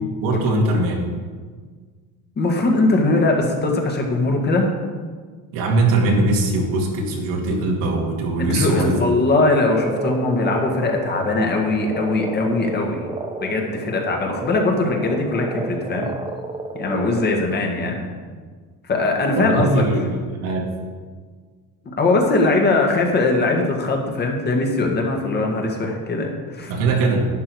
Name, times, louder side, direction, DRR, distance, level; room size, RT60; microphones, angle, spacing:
voice 1, 0.2-1.0 5.5-9.0 17.8-17.9 19.3-20.7 26.7-27.3, right 2 dB, 85° right, -1 dB, 2.7 m, -21 dB
voice 2, 2.4-4.7 8.4-13.0 13.4-16.1 16.7-18.0 18.8-19.8 21.8-26.7, left 2 dB, 30° left, 1 dB, 1.7 m, -20 dB
Frog, 9.6-17.4, right 3 dB, 15° right, 0.7 m, -31 dB
11.0 x 9.8 x 4.7 m, 1.5 s
cardioid pair, 160°, 34 cm